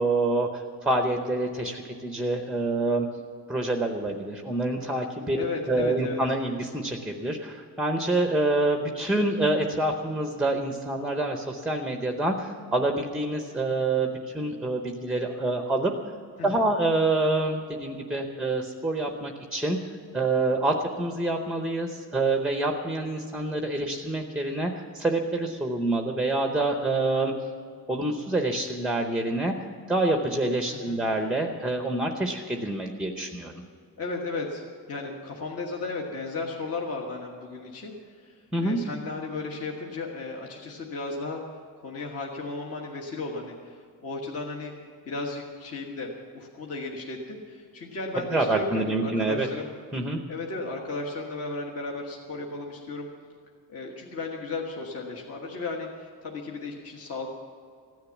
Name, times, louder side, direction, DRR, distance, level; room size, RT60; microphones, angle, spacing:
voice 1, 0.0-3.1 3.5-14.1 14.3-15.9 16.4-19.8 20.1-27.3 27.9-29.5 29.9-33.5 38.5-38.8 48.3-49.5 49.9-50.2, right 2 dB, ahead, 4 dB, 0.7 m, -27 dB
voice 2, 5.3-6.2 16.4-16.6 30.7-31.0 34.0-41.4 41.8-44.7 45.0-49.7 50.3-53.1 53.7-57.3, left 3 dB, 40° left, -1 dB, 1.5 m, -35 dB
15.5 x 10.5 x 7.1 m, 2.2 s
cardioid pair, 165°, 37 cm